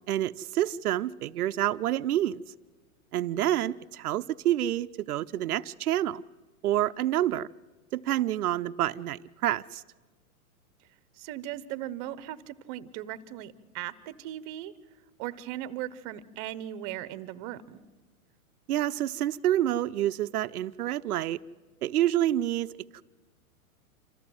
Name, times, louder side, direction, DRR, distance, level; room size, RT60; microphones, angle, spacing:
voice 1, 0.1-2.4 3.1-6.2 6.6-7.5 7.9-9.8 18.7-21.4 21.8-22.7 22.9-23.0, right 12 dB, 85° right, 10 dB, 0.6 m, -28 dB
voice 2, 11.2-14.7 15.2-17.8, right 13 dB, 35° right, 16 dB, 0.9 m, -38 dB
26.5 x 14.5 x 7.7 m, 1.3 s
hypercardioid pair, 135°, 43 cm